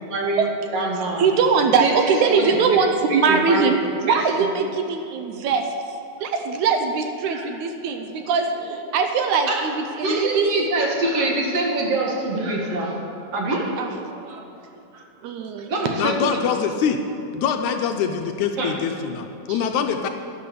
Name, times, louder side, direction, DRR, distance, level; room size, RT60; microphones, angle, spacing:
voice 1, 0.1-1.3 1.8-2.8 3.1-3.7 4.1-4.2 7.3-7.5 9.5-9.6 10.0-13.0 13.3-14.4 14.9-15.0 15.7-16.4 18.6-18.8 19.5-19.6, right 2 dB, 55° right, -1 dB, 2.5 m, -25 dB
voice 2, 1.2-3.8 4.0-5.7 6.2-10.5 13.8-13.9 15.2-15.7 16.3-16.4, right 5 dB, 75° right, 5 dB, 2.1 m, -21 dB
voice 3, 16.0-17.0 17.3-20.1, left 7 dB, 75° left, 6 dB, 1.9 m, -24 dB
11.5 x 10.0 x 6.8 m, 2.7 s
omnidirectional pair, 3.7 m